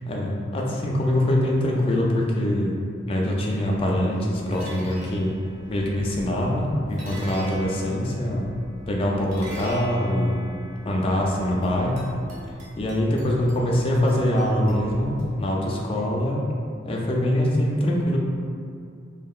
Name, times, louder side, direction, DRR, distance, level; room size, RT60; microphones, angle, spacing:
voice 1, 0.1-2.8 3.1-5.4 5.7-8.5 8.9-10.4 10.8-12.1 12.8-15.1 15.4-16.4 16.8-18.2, left 1 dB, 30° left, -2 dB, 0.3 m, -23 dB
sound 1, 3.6-15.7, equal, 35° right, 0.6 m, -42 dB
2.7 x 2.5 x 2.3 m, 2.3 s
head